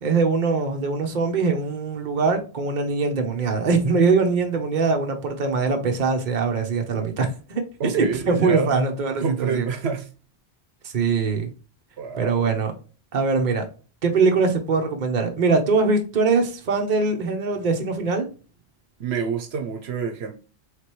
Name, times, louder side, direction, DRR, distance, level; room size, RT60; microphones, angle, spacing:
voice 1, 0.0-9.7 10.8-11.5 12.2-12.7 13.1-13.6 14.0-18.3, right 4 dB, 50° right, 1.0 m, -22 dB
voice 2, 7.8-8.8 9.2-10.1 12.0-12.6 19.0-20.3, right 5 dB, 80° right, 1.0 m, -28 dB
5.0 x 3.3 x 3.1 m
omnidirectional pair, 1.1 m